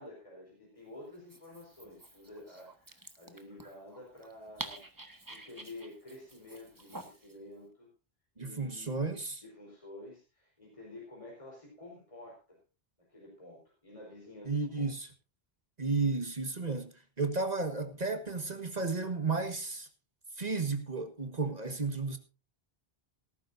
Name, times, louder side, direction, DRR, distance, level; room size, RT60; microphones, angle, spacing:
voice 1, 0.0-4.8 5.3-7.9 8.3-9.0 9.4-12.6 13.0-14.9, left 2 dB, 30° left, 4.5 m, -50 dB
Dog, 1.1-7.4, right 2 dB, 20° right, 1.4 m, -49 dB
voice 2, 8.4-9.3 14.4-15.1 15.8-19.9 20.4-22.2, right 4 dB, 40° right, 1.6 m, -33 dB
18.0 x 14.0 x 2.6 m
omnidirectional pair, 1.1 m